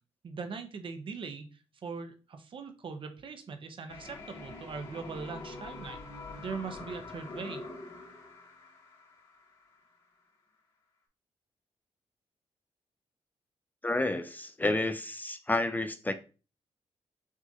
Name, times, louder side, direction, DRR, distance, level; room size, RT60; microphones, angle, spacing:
voice 1, 0.2-1.5 1.8-6.0 6.4-7.6, right 5 dB, 50° right, 0.7 m, -40 dB
sound 1, 3.9-9.8, left 3 dB, 55° left, 1.7 m, -45 dB
voice 2, 13.8-16.1, left 2 dB, 15° left, 0.4 m, -30 dB
6.1 x 2.5 x 2.7 m
cardioid pair, 100°, 11 cm